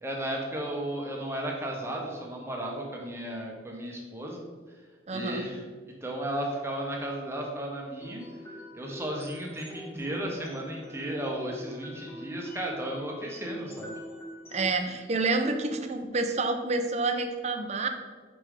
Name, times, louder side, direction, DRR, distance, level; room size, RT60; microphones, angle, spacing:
voice 1, 0.0-4.4 5.1-5.6 6.0-8.2 8.7-13.9, right 1 dB, 15° right, -1 dB, 1.0 m, -34 dB
voice 2, 5.1-5.4 14.5-17.9, right 3 dB, 35° right, 6 dB, 0.6 m, -28 dB
sound 1, 8.0-14.8, left 1 dB, 15° left, 1.2 m, -43 dB
5.5 x 5.2 x 4.9 m, 1.5 s
head